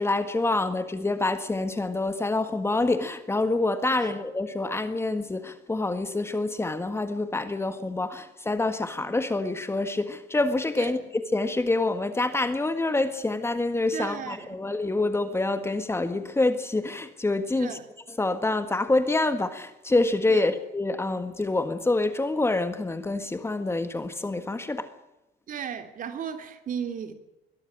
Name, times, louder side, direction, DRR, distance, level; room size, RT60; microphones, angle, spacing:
voice 1, 0.0-11.0 11.3-17.7 18.2-24.9, left 2 dB, 15° left, 1.6 m, -26 dB
voice 2, 13.9-14.6 17.5-17.8 20.3-20.5 25.5-27.1, right 7 dB, 55° right, 2.8 m, -35 dB
22.0 x 13.0 x 10.0 m
cardioid pair, 110°, 17 cm